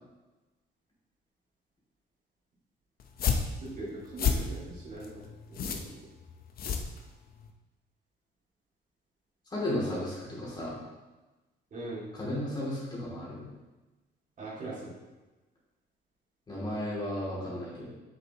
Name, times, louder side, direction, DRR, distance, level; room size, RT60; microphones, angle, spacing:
sound 1, 3.0-7.5, left 6 dB, 55° left, 0.8 m, -32 dB
voice 1, 3.6-6.1 11.7-12.0 14.4-15.0, right 2 dB, 45° right, -7 dB, 2.4 m, -41 dB
voice 2, 9.5-10.8 12.1-13.5 16.5-17.9, left 1 dB, 25° left, -7 dB, 2.6 m, -34 dB
7.8 x 6.8 x 3.0 m, 1.1 s
cardioid pair, 155°, 19 cm